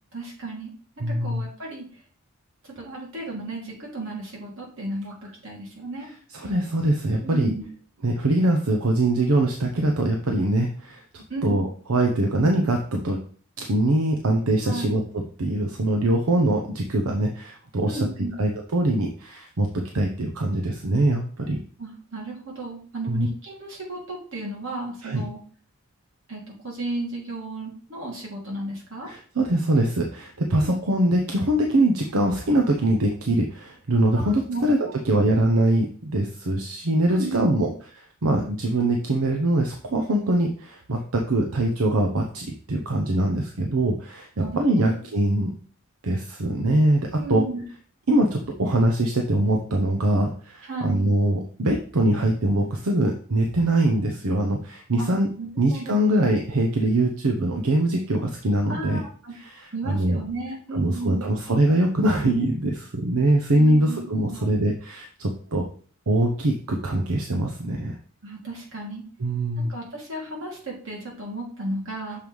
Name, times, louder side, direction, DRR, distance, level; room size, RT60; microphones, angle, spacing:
voice 1, 0.1-0.7 1.1-1.9 2.6-6.1 7.2-7.7 11.3-11.6 14.6-14.9 17.8-18.4 21.8-25.4 26.3-29.1 30.4-30.7 34.2-34.7 35.1-35.3 37.1-37.7 43.2-43.4 43.6-43.8 44.4-45.0 47.2-47.6 50.6-51.1 55.0-55.1 55.4-56.2 58.7-59.3 59.7-61.3 63.6-64.5 68.2-69.0 69.7-72.2, right 2 dB, 60° right, -2 dB, 2.4 m, -34 dB
voice 2, 1.0-1.4 6.3-7.5 8.0-13.2 13.6-18.0 18.4-21.6 23.1-23.3 25.0-25.2 29.0-34.8 35.0-37.7 38.2-44.3 44.6-45.5 46.0-47.4 48.1-55.3 55.6-59.0 59.4-60.2 60.7-65.7 66.1-67.9 69.2-69.7, right 1 dB, 80° right, 2 dB, 0.8 m, -23 dB
6.6 x 3.1 x 5.3 m, 0.44 s
head